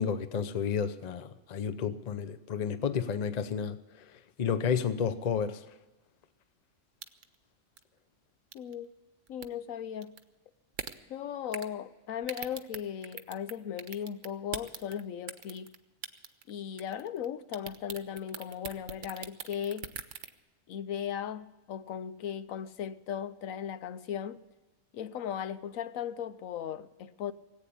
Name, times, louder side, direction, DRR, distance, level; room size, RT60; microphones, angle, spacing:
voice 1, 0.0-3.8 4.4-5.6, left 7 dB, 40° left, 0.7 m, -31 dB
sound 1, 7.0-7.3 7.8-7.9 8.5-8.7 9.3-9.5 10.0-10.2 10.7-10.9 11.5-11.7 12.2-13.5 13.8-15.0 15.3-15.8 16.0-16.5 16.8-17.2 17.5-20.3, right 7 dB, 70° right, 1.2 m, -40 dB
voice 2, 8.5-8.9 9.3-10.2 11.1-15.7 16.5-19.9 20.7-24.4 24.9-27.3, left 9 dB, 85° left, 1.1 m, -37 dB
18.5 x 8.6 x 8.6 m
omnidirectional pair, 1.4 m